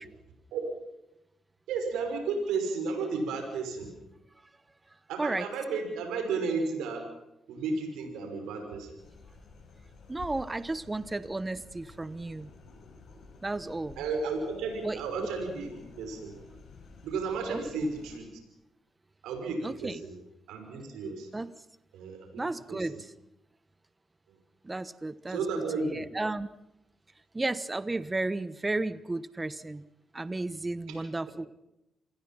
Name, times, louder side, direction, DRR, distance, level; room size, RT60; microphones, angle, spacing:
voice 1, 1.7-3.9 5.1-7.0 7.5-9.0 14.0-16.4 17.0-18.3 19.2-20.2 20.5-21.3 21.9-22.4 22.7-23.0 24.3-24.4 25.3-26.0 30.9-31.1, right 4 dB, 80° right, 4 dB, 5.8 m, -33 dB
sound 1, 9.0-18.2, left 4 dB, 65° left, 7.5 m, -51 dB
voice 2, 10.1-12.5 13.4-14.0 14.8-15.0 17.5-17.6 19.6-20.0 21.3-21.5 22.4-23.0 24.6-25.4 25.9-26.5 27.3-29.8 30.1-31.5, right 2 dB, 25° right, 15 dB, 1.2 m, -33 dB
27.5 x 20.5 x 5.8 m, 0.90 s
supercardioid pair, 50°, 0 cm